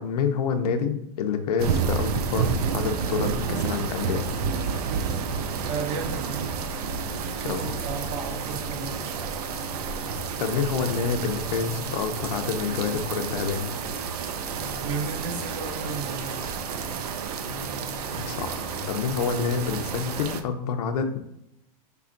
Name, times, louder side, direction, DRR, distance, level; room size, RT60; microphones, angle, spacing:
voice 1, 0.0-4.2 7.4-7.7 10.4-13.7 18.2-21.2, left 6 dB, 80° left, 7 dB, 0.6 m, -28 dB
sound 1, 1.6-20.4, right 6 dB, 80° right, 0.5 m, -30 dB
sound 2, 4.3-20.3, left 5 dB, 15° left, 0.4 m, -43 dB
voice 2, 5.6-6.5 7.4-9.3 14.8-16.4, right 5 dB, 50° right, 5 dB, 0.8 m, -33 dB
5.5 x 3.3 x 2.5 m, 0.80 s
supercardioid pair, 155°, 20 cm